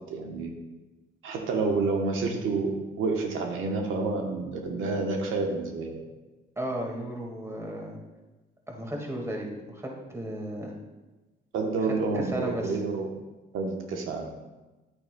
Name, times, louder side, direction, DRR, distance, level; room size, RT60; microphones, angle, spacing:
voice 1, 0.1-0.5 1.2-5.9 11.5-13.1 13.5-14.3, right 3 dB, 85° right, 2 dB, 1.0 m, -29 dB
voice 2, 6.5-8.0 8.7-10.7 12.1-12.8, right 1 dB, 15° right, 0 dB, 1.8 m, -34 dB
9.6 x 8.7 x 2.2 m, 1.1 s
cardioid pair, 90°, 20 cm